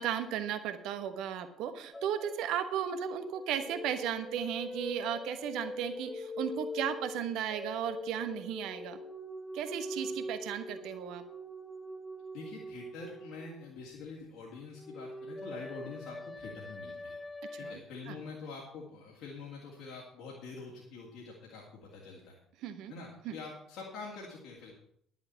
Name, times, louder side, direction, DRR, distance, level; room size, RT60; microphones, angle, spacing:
voice 1, 0.0-9.0 9.5-11.2 17.6-17.8 18.1-18.2 22.6-22.9 23.2-23.4, right 9 dB, 60° right, 9 dB, 1.1 m, -35 dB
sound 1, 1.9-2.5 2.8-13.8 14.7-17.8, left 1 dB, 15° left, 1.3 m, -43 dB
voice 2, 12.3-17.2 17.6-22.4 22.9-24.7, left 4 dB, 65° left, -4 dB, 2.5 m, -45 dB
11.0 x 7.3 x 7.1 m, 0.71 s
figure-of-eight pair, 50°, 0 cm